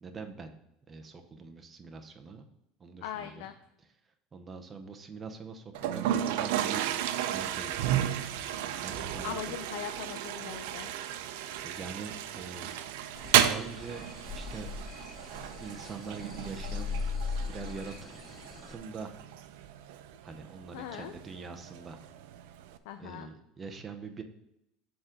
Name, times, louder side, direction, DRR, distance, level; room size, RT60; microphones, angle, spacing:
voice 1, 0.0-0.5 0.9-2.5 2.8-3.5 4.3-7.0 7.3-8.0 8.7-9.6 11.6-12.7 13.3-15.0 15.6-17.0 17.3-18.2 18.7-19.1 20.2-22.0 23.0-24.2, right 4 dB, 20° right, 5 dB, 0.7 m, -43 dB
voice 2, 3.0-3.5 9.2-10.9 20.7-21.1 22.8-23.3, left 11 dB, 85° left, 8 dB, 0.5 m, -40 dB
Toilet flush, 5.7-22.8, right 11 dB, 85° right, 0.5 m, -33 dB
sound 1, 6.6-18.7, right 6 dB, 70° right, 1.2 m, -51 dB
sound 2, 13.2-18.7, left 5 dB, 25° left, 0.5 m, -39 dB
7.0 x 3.8 x 6.5 m, 0.83 s
cardioid pair, 160°, 0 cm